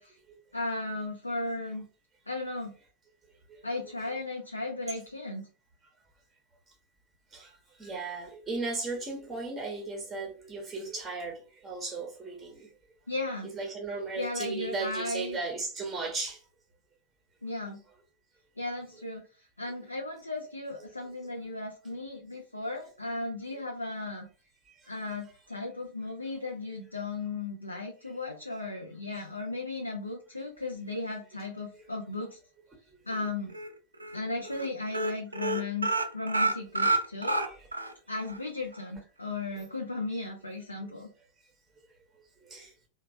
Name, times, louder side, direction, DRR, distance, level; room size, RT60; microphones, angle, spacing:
voice 1, 0.5-1.8 2.3-2.7 3.6-5.5 13.1-13.5 14.2-15.4 17.4-17.8 18.6-24.3 24.9-32.4 33.0-33.5 34.1-37.4 38.1-41.1, left 2 dB, 85° left, 0.4 m, -36 dB
voice 2, 7.3-12.7 13.4-16.4 24.8-24.9 31.7-31.8 36.0-36.1 37.3-37.7 42.4-42.7, right 3 dB, 15° right, 0.7 m, -36 dB
sound 1, 33.1-33.7 34.0-34.2 34.4-34.7 34.9-37.9 38.3-38.4 38.7-38.8, right 2 dB, 80° right, 0.4 m, -28 dB
2.9 x 2.2 x 2.5 m
figure-of-eight pair, 90°, 0 cm